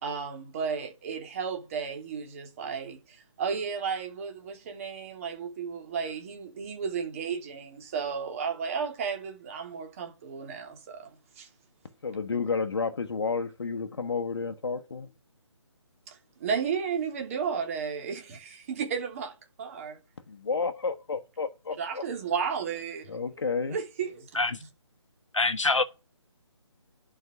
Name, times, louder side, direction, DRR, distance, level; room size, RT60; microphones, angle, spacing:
voice 1, 0.0-11.1 11.4-11.5 16.4-20.0 21.8-23.2 23.7-24.3, right 6 dB, 30° right, 2.9 m, -33 dB
voice 2, 12.0-15.1 20.3-22.0 23.1-23.8, left 4 dB, 55° left, 1.2 m, -31 dB
voice 3, 25.3-25.8, left 3 dB, 80° left, 1.0 m, -24 dB
11.0 x 5.4 x 5.9 m
figure-of-eight pair, 150°, 16 cm